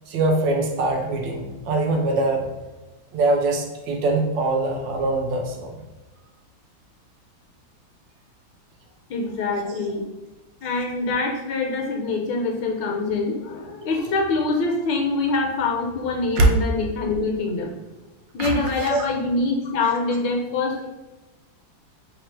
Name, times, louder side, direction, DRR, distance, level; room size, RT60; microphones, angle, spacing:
voice 1, 0.1-2.5 3.1-5.8 9.6-9.8 16.4-16.5 18.4-19.0 19.8-19.9, right 2 dB, 75° right, 2 dB, 1.2 m, -23 dB
voice 2, 9.1-10.1 10.6-17.8 18.3-20.9, left 3 dB, 70° left, 1 dB, 1.2 m, -25 dB
3.3 x 2.4 x 4.4 m, 1.1 s
omnidirectional pair, 2.2 m